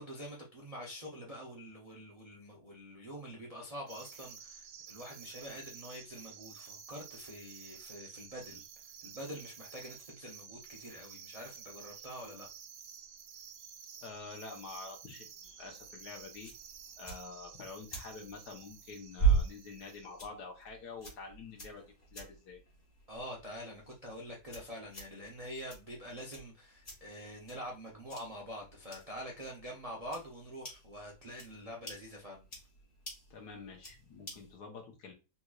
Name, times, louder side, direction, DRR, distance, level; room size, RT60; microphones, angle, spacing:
voice 1, 0.0-8.6 9.0-12.5 23.1-32.4, equal, 40° right, 0.5 m, -46 dB
sound 1, 3.9-20.3, right 8 dB, 75° right, 1.2 m, -52 dB
voice 2, 14.0-16.5 17.0-21.8 22.1-22.6 33.3-35.1, left 4 dB, 70° left, 1.5 m, -47 dB
sound 2, 15.4-34.6, right 5 dB, 35° left, 1.6 m, -40 dB
4.1 x 3.0 x 2.4 m
omnidirectional pair, 1.9 m